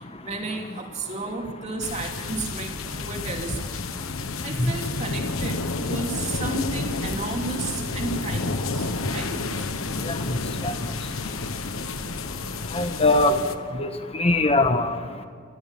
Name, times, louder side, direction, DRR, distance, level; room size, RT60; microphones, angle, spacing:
voice 1, 0.2-3.8 4.4-9.4, right 3 dB, 35° right, 2 dB, 2.8 m, -33 dB
sound 1, 1.8-13.5, left 3 dB, 80° left, 1.3 m, -30 dB
voice 2, 10.1-10.4 10.6-10.7 12.7-13.4 13.8-13.9 14.2-15.0, left 2 dB, 30° left, 7 dB, 1.3 m, -21 dB
28.0 x 13.0 x 7.3 m, 2.1 s
head